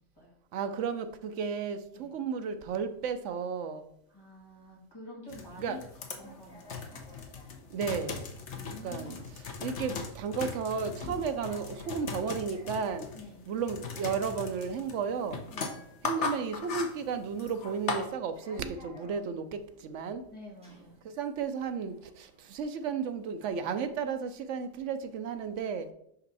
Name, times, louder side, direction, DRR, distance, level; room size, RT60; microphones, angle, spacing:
voice 1, 0.0-0.4 1.9-2.1 4.1-5.8 6.1-7.0 8.5-9.3 13.1-13.4 15.5-15.8 20.3-21.0, left 1 dB, 20° left, -4 dB, 2.2 m, -48 dB
voice 2, 0.5-3.8 5.6-5.8 7.7-8.2 8.6-9.1 9.6-13.1 13.5-15.5 16.0-20.2 21.2-25.9, right 6 dB, 70° right, 9 dB, 0.9 m, -33 dB
sound 1, 5.3-18.1, left 5 dB, 65° left, 1.1 m, -39 dB
sound 2, 6.0-23.5, right 2 dB, 5° right, 2.2 m, -57 dB
5.5 x 5.2 x 4.0 m, 0.73 s
omnidirectional pair, 1.3 m